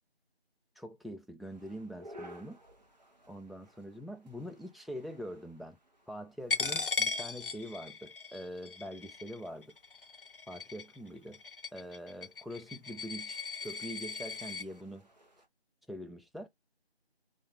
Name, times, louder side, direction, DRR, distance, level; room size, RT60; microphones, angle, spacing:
voice 1, 0.8-2.6 3.3-5.8 6.1-9.8 10.5-11.4 11.7-15.1 15.9-16.5, equal, ahead, 0.3 m, -44 dB
sound 1, 1.4-15.5, equal, 40° right, 0.9 m, -59 dB
Coin (dropping), 6.5-14.7, left 4 dB, 55° left, 0.5 m, -38 dB
4.0 x 2.5 x 3.1 m
figure-of-eight pair, 165°, 32 cm